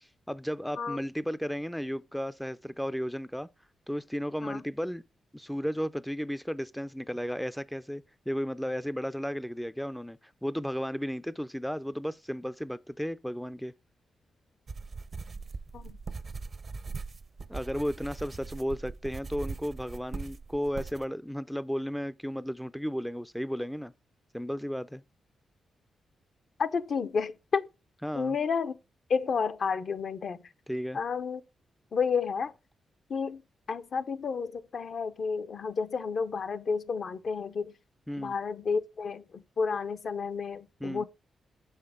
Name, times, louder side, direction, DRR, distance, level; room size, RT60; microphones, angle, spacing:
voice 1, 0.0-3.5 3.9-5.0 5.3-13.7 17.5-23.9 24.3-25.0 28.0-28.4 30.7-31.0 38.1-38.3 40.8-41.1, equal, ahead, 0.3 m, -34 dB
sound 1, 14.7-21.0, right 4 dB, 50° right, 0.5 m, -40 dB
voice 2, 26.6-27.7 28.2-28.7 29.1-30.4 30.9-31.4 31.9-32.5 33.1-33.4 33.7-37.7 38.2-41.1, left 5 dB, 60° left, 0.6 m, -31 dB
6.2 x 5.7 x 3.5 m
cardioid pair, 70°, 0 cm